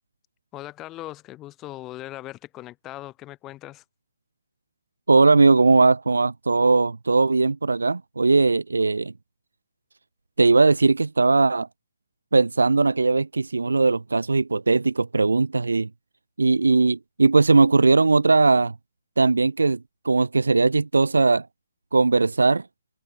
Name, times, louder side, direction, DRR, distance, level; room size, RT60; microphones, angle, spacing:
voice 1, 0.5-3.8, left 16 dB, 20° left, 5.4 m, -39 dB
voice 2, 5.1-9.1 10.4-11.7 12.3-15.9 16.4-18.7 19.2-19.8 20.0-21.5 21.9-22.6, right 3 dB, 75° right, 1.1 m, -19 dB
figure-of-eight pair, 135°, 0 cm